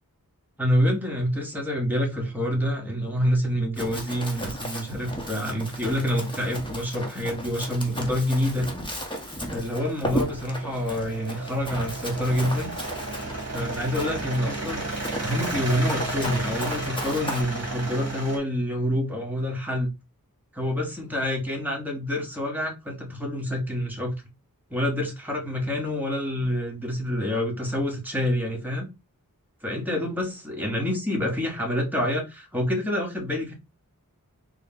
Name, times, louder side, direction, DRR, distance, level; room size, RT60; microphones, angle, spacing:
voice 1, 0.6-8.7 9.5-12.7 13.5-14.9 15.2-19.9 20.5-24.2 24.7-28.9 29.6-33.5, equal, 5° right, 1.6 m, -27 dB
Run, 3.8-17.4, equal, 15° left, 1.2 m, -35 dB
sound 1, 9.3-18.4, right 2 dB, 45° right, 1.3 m, -33 dB
3.7 x 2.4 x 3.8 m
wide cardioid pair, 40°, 35 cm